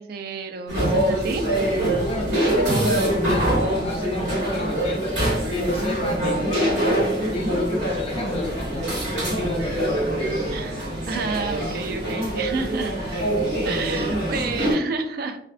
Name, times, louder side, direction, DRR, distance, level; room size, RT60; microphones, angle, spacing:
voice 1, 0.0-1.6 10.5-12.9 13.6-15.4, right 4 dB, 50° right, 6 dB, 0.3 m, -30 dB
sound 1, 0.7-14.7, right 1 dB, 85° right, 1.4 m, -24 dB
voice 2, 2.0-5.2 5.5-7.1 7.3-10.4, left 1 dB, 30° left, -1 dB, 0.5 m, -30 dB
2.5 x 2.2 x 2.4 m, 0.69 s
head